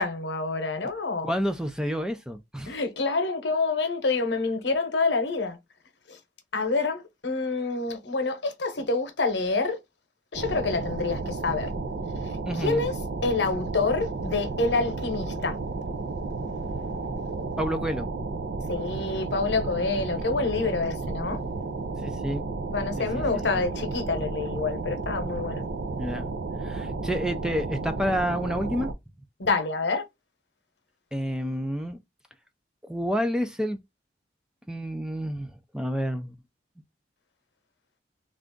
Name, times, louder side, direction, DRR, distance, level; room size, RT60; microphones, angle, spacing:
voice 1, 0.0-1.3 2.7-5.6 6.1-6.2 6.5-9.8 10.3-11.7 12.2-15.6 18.7-21.4 22.7-25.6 29.4-30.0, left 3 dB, 75° left, 0.9 m, -27 dB
voice 2, 1.2-2.7 12.5-12.8 17.6-18.1 22.0-22.4 23.0-23.4 26.0-26.3 26.6-28.9 31.1-32.0 32.9-33.8 34.7-35.5 35.7-36.3, equal, 5° right, 0.4 m, -29 dB
sound 1, 10.3-28.9, right 3 dB, 65° right, 0.5 m, -32 dB
3.4 x 2.5 x 3.7 m
head